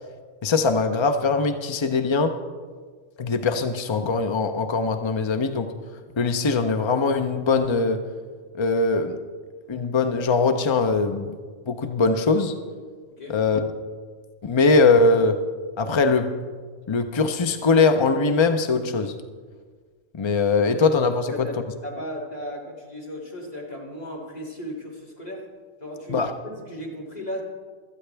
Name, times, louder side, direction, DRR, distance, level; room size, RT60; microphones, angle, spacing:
voice 1, 0.4-2.4 3.2-5.7 6.2-8.1 8.6-9.2 9.7-11.4 11.7-12.5 13.3-13.7 14.4-15.4 15.8-16.4 16.9-19.1 20.1-21.5 26.1-26.3, left 4 dB, 45° left, 8 dB, 0.3 m, -21 dB
voice 2, 21.3-25.5 25.8-27.4, equal, 30° left, -3 dB, 2.7 m, -36 dB
17.0 x 13.0 x 3.4 m, 1.5 s
omnidirectional pair, 1.3 m